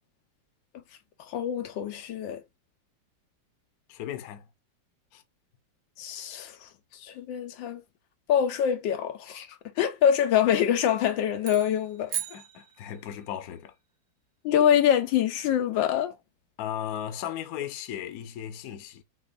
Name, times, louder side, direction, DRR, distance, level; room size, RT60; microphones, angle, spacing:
voice 1, 1.3-2.4 6.0-6.7 7.0-7.8 8.3-12.1 14.4-16.1, left 9 dB, 80° left, 1.3 m, -25 dB
voice 2, 3.9-4.5 5.1-5.2 12.1-13.7 16.6-19.0, left 10 dB, 60° left, 1.0 m, -36 dB
sound 1, 11.4-13.3, right 9 dB, 65° right, 1.0 m, -37 dB
6.3 x 2.5 x 2.5 m
omnidirectional pair, 2.1 m